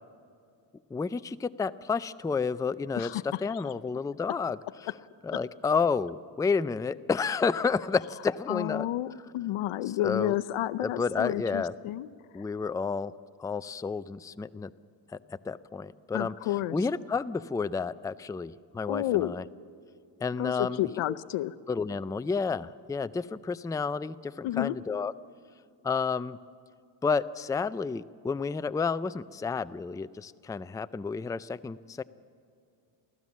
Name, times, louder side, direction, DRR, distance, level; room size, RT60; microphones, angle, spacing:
voice 1, 0.9-4.6 5.2-8.9 10.0-10.3 10.8-11.7 12.3-13.1 13.4-14.7 15.3-16.3 16.7-19.4 20.2-21.2 21.7-25.1 25.8-26.4 27.0-32.0, left 5 dB, 10° left, 13 dB, 0.4 m, -30 dB
voice 2, 3.0-3.4 8.5-12.1 16.1-16.8 18.9-19.3 20.4-21.5 24.4-24.7, left 14 dB, 85° left, 14 dB, 0.8 m, -30 dB
23.5 x 15.5 x 7.3 m, 2.4 s
cardioid pair, 80°, 49 cm